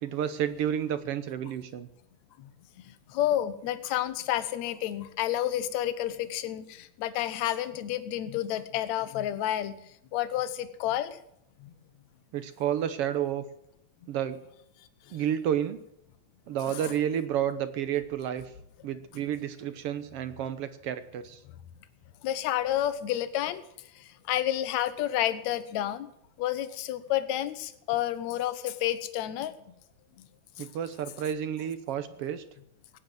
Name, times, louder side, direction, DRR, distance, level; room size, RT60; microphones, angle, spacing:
voice 1, 0.0-1.9 12.3-13.4 14.1-14.4 15.1-15.8 16.5-18.5 18.8-21.4 30.6-32.4, right 10 dB, 65° right, 12 dB, 1.7 m, -30 dB
voice 2, 3.1-9.8 10.1-11.2 16.7-16.8 22.2-23.6 24.3-26.1 26.4-29.5 30.2-30.3 30.6-30.7, left 12 dB, 75° left, 13 dB, 2.2 m, -30 dB
17.5 x 9.5 x 7.8 m, 0.76 s
omnidirectional pair, 3.3 m